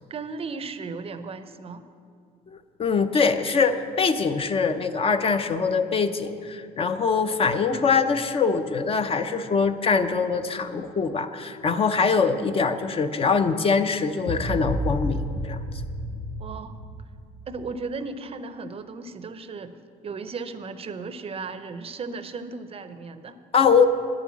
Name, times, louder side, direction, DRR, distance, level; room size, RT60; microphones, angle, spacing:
voice 1, 0.1-1.8 16.4-16.8 17.5-19.8 20.0-23.4, right 4 dB, 35° right, 11 dB, 0.6 m, -35 dB
voice 2, 2.8-15.6 23.5-23.9, left 5 dB, 35° left, 9 dB, 0.5 m, -23 dB
sound 1, 14.3-17.3, equal, 80° left, 2.3 m, -31 dB
9.1 x 7.4 x 8.5 m, 2.4 s
cardioid pair, 110°, 17 cm